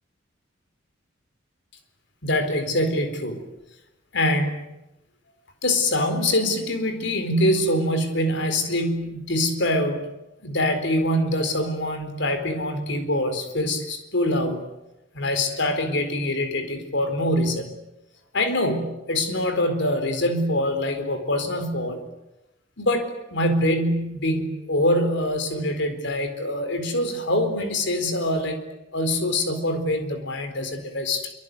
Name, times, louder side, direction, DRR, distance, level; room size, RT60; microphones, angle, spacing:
voice 1, 2.2-3.4 4.1-4.6 5.6-10.1 10.4-14.7 15.1-17.7 18.3-22.1 22.8-28.6 28.9-31.3, left 1 dB, 65° left, 8 dB, 4.2 m, -24 dB
25.5 x 24.5 x 9.6 m, 0.92 s
head